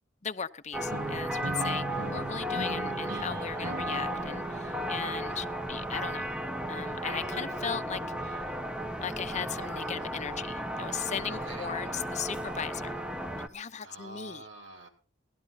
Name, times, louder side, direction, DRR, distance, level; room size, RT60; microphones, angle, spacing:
voice 1, 0.2-1.9 2.1-6.3 6.7-8.4 9.0-13.0 13.5-14.4, left 7 dB, 40° left, 0.7 m, -37 dB
sound 1, 0.7-13.5, equal, 5° right, 0.9 m, -34 dB
sound 2, 0.9-6.9, right 3 dB, 50° right, 0.6 m, -40 dB
voice 2, 11.3-11.7 13.8-14.9, right 2 dB, 90° right, 3.5 m, -46 dB
17.0 x 12.0 x 4.1 m
head